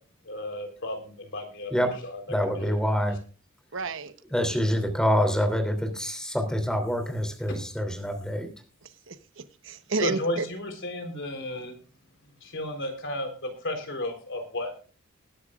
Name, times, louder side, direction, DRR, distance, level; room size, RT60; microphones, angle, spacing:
voice 1, 0.3-2.2 2.6-2.8 10.0-11.7 12.4-14.8, left 1 dB, 60° left, 4 dB, 3.8 m, -33 dB
voice 2, 2.3-3.2 4.3-8.5, equal, 5° left, 5 dB, 3.0 m, -26 dB
voice 3, 3.7-4.1 8.8-10.5, right 4 dB, 65° right, 11 dB, 1.0 m, -32 dB
20.5 x 11.0 x 2.4 m, 0.38 s
head